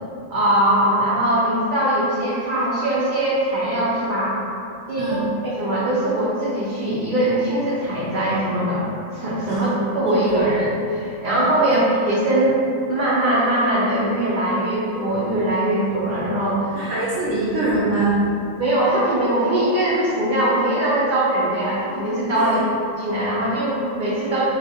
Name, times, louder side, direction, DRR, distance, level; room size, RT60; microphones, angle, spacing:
voice 1, 0.3-4.4 4.9-12.6 12.9-16.9 18.6-22.6 23.0-24.4, right 1 dB, 60° right, -8 dB, 0.5 m, -21 dB
voice 2, 5.0-5.3 9.5-9.7 10.3-10.4 16.7-18.3 22.3-22.7, right 2 dB, 80° right, -6 dB, 0.9 m, -23 dB
4.4 x 2.3 x 2.6 m, 2.6 s
omnidirectional pair, 1.4 m